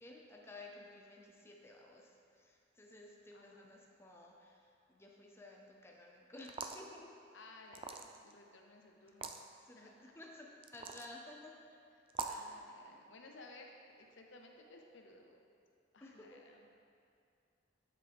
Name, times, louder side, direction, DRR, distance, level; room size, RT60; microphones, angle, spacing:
voice 1, 0.0-7.2 9.0-9.1 9.6-11.5 12.3-12.6 16.0-16.4, left 2 dB, 15° left, -1 dB, 0.6 m, -55 dB
voice 2, 3.3-3.6 7.3-9.3 9.7-10.1 12.2-15.4 15.9-16.7, left 2 dB, 80° left, 2 dB, 0.8 m, -57 dB
sound 1, 6.4-6.9 7.7-8.3 9.1-9.4 10.6-11.1 12.1-12.5, right 5 dB, 30° right, 0.3 m, -42 dB
7.6 x 6.9 x 3.5 m, 2.4 s
head